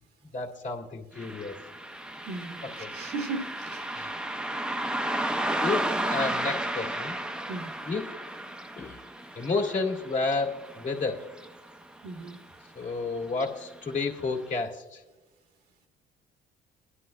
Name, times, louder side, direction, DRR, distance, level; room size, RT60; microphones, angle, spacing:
voice 1, 0.3-1.5 2.6-2.9 3.9-4.1 5.6-7.2 7.8-8.1 8.8-9.0 9.4-11.2 12.8-15.0, left 3 dB, 45° left, 1.8 m, -31 dB
Car passing by, 1.2-12.0 12.3-12.4 13.3-13.5 14.0-14.1 14.6-14.7, right 1 dB, 5° right, 0.5 m, -33 dB
voice 2, 2.3-3.9 7.5-7.8 12.0-12.4, right 3 dB, 75° right, 1.3 m, -37 dB
22.5 x 11.0 x 2.3 m
cardioid pair, 110°, 17 cm